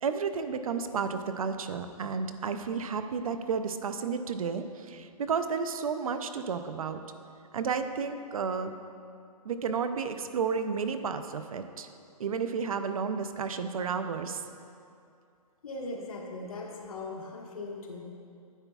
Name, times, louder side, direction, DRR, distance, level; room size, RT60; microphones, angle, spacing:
voice 1, 0.0-7.0 7.5-8.7 9.4-11.9 12.2-14.5, right 5 dB, 65° right, 9 dB, 0.5 m, -32 dB
voice 2, 15.6-18.0, left 2 dB, 65° left, -1 dB, 1.3 m, -39 dB
9.9 x 7.9 x 2.3 m, 2.5 s
hypercardioid pair, 175°, 20 cm